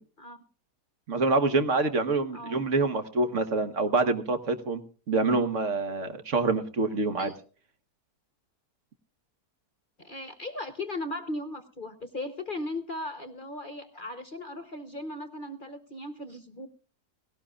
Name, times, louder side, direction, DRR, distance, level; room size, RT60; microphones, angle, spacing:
voice 1, 1.1-4.8 5.1-7.3, right 3 dB, 50° right, 9 dB, 1.4 m, -26 dB
voice 2, 2.3-2.7 7.2-7.4 10.0-16.7, left 1 dB, 40° left, 9 dB, 1.0 m, -37 dB
18.0 x 17.5 x 2.4 m, 0.38 s
omnidirectional pair, 1.7 m